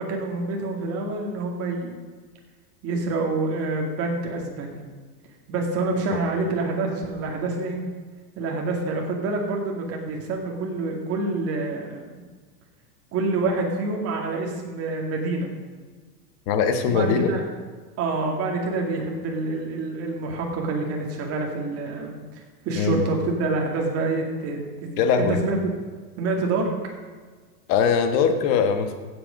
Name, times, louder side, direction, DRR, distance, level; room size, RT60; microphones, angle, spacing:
voice 1, 0.0-1.9 2.8-4.9 5.5-7.9 8.4-12.2 13.1-15.6 16.9-17.4 18.0-25.6 26.2-26.7, right 3 dB, 30° right, 1 dB, 2.4 m, -27 dB
voice 2, 16.5-17.3 22.7-23.0 25.0-25.4 27.7-29.0, left 6 dB, 35° left, 7 dB, 1.4 m, -21 dB
15.5 x 8.3 x 5.2 m, 1.4 s
supercardioid pair, 155°, 48 cm